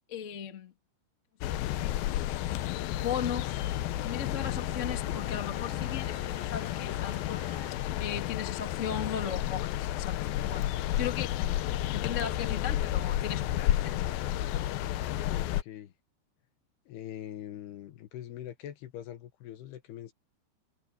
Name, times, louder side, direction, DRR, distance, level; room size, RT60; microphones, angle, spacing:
voice 1, 0.1-0.7 1.8-1.9 2.9-3.6 4.0-7.4 8.0-10.7 11.0-11.3 11.9-14.4, left 8 dB, 35° left, 1.2 m, -37 dB
sound 1, 1.4-15.6, left 13 dB, 85° left, 2.0 m, -31 dB
Bowed string instrument, 3.6-8.0, right 6 dB, 35° right, 1.1 m, -52 dB
voice 2, 15.3-15.9 16.9-20.1, left 12 dB, 70° left, 2.9 m, -43 dB
omnidirectional pair, 5.3 m